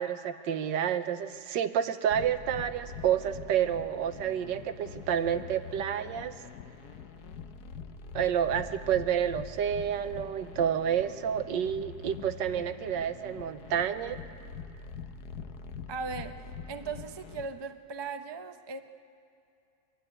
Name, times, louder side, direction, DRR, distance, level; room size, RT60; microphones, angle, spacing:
voice 1, 0.0-6.3 8.1-14.3, right 9 dB, 85° right, 10 dB, 1.5 m, -29 dB
sound 1, 2.1-17.5, left 6 dB, 65° left, 1.3 m, -44 dB
voice 2, 15.9-16.4 16.7-18.8, right 4 dB, 45° right, 7 dB, 0.3 m, -38 dB
25.0 x 12.0 x 9.7 m, 2.5 s
omnidirectional pair, 1.9 m